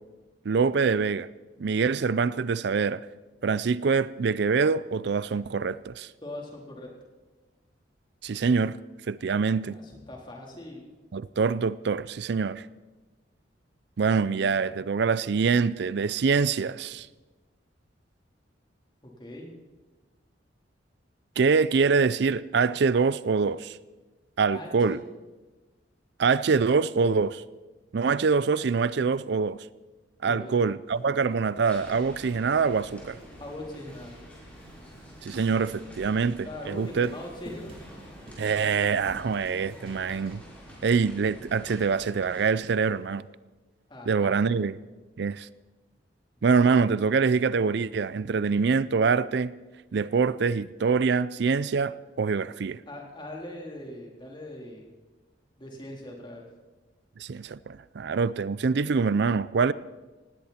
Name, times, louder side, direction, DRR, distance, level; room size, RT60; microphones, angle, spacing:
voice 1, 0.4-1.3 1.6-3.0 3.4-6.1 8.2-8.8 9.1-9.7 11.1-12.7 14.0-17.1 21.4-23.8 24.4-25.0 26.2-27.4 27.9-29.7 30.2-33.2 35.2-37.1 38.4-40.4 40.8-43.2 44.1-44.8 45.2-45.5 46.4-49.5 49.9-52.8 57.2-59.7, right 5 dB, 65° right, 0.4 m, -25 dB
voice 2, 6.2-6.9 9.6-10.8 19.0-19.5 24.5-25.0 30.2-30.6 33.4-34.1 36.4-37.7 43.9-44.6 46.4-46.5 52.9-54.9 55.6-56.5, left 1 dB, 25° left, 3.7 m, -41 dB
sound 1, 30.9-32.5 32.8-35.9 36.6-41.3 41.7-41.8 42.8-42.9, right 1 dB, 30° right, 3.2 m, -51 dB
sound 2, 31.6-42.5, equal, 10° left, 5.6 m, -48 dB
19.0 x 16.5 x 4.3 m
head